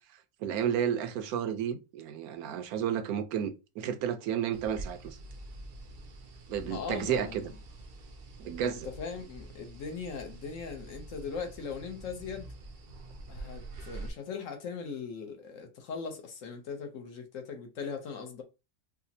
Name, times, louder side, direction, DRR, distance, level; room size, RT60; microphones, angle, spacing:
voice 1, 0.4-5.2 6.5-7.5 8.4-8.9, right 9 dB, 80° right, 1.0 m, -32 dB
sound 1, 4.5-14.1, right 2 dB, 60° right, 0.6 m, -46 dB
voice 2, 6.6-7.4 8.6-12.5 13.3-18.4, left 5 dB, 65° left, 1.0 m, -39 dB
4.9 x 2.1 x 2.7 m
omnidirectional pair, 1.5 m